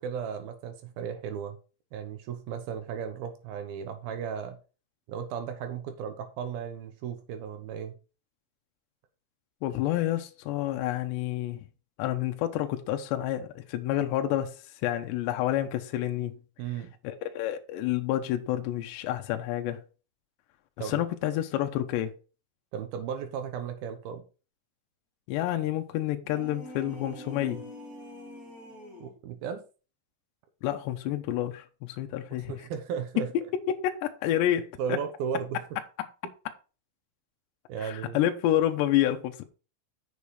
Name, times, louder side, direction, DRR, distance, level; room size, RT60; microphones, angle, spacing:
voice 1, 0.0-1.6 1.9-4.6 5.1-8.0 16.6-16.9 20.8-21.0 22.7-24.3 29.0-29.6 32.3-33.3 34.8-35.7 37.7-38.2, right 7 dB, 70° right, 2.4 m, -35 dB
voice 2, 9.6-11.6 12.0-16.4 17.0-19.8 20.8-22.1 25.3-27.6 30.6-32.5 33.7-35.0 37.8-39.4, left 12 dB, 80° left, 2.9 m, -29 dB
sound 1, 26.2-29.2, equal, 25° right, 2.6 m, -44 dB
7.3 x 7.0 x 4.8 m
omnidirectional pair, 5.2 m